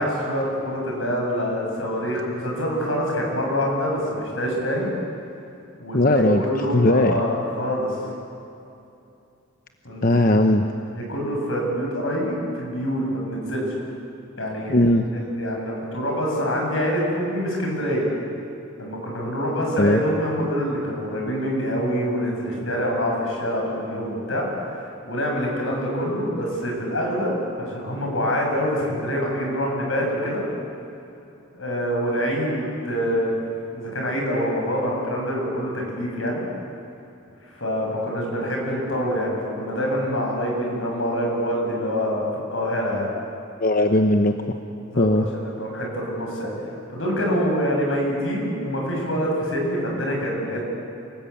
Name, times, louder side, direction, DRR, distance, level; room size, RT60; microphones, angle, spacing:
voice 1, 0.0-4.9 5.8-8.0 9.8-10.2 10.9-13.8 14.4-18.1 18.8-24.5 24.7-30.4 31.5-33.3 33.7-36.4 37.5-43.1 44.9-46.5 46.9-50.6, equal, 80° left, -1 dB, 7.6 m, -25 dB
voice 2, 5.9-6.4 6.7-7.2 10.0-10.6 14.7-15.1 19.8-20.0 43.6-44.3 45.0-45.2, left 1 dB, 45° left, 5 dB, 1.0 m, -18 dB
28.5 x 19.5 x 8.6 m, 2.7 s
head